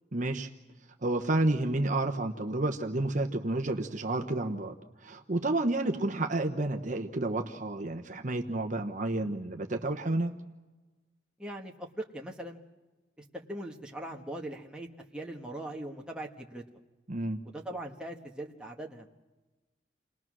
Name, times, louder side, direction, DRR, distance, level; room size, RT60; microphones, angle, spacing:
voice 1, 0.1-0.5 1.0-4.8 5.0-10.4 17.1-17.4, right 2 dB, 40° right, 4 dB, 1.0 m, -30 dB
voice 2, 11.4-12.6 13.4-14.9 15.1-16.6 17.4-19.1, right 1 dB, 5° right, -1 dB, 1.4 m, -40 dB
29.0 x 20.0 x 6.2 m, 1.2 s
head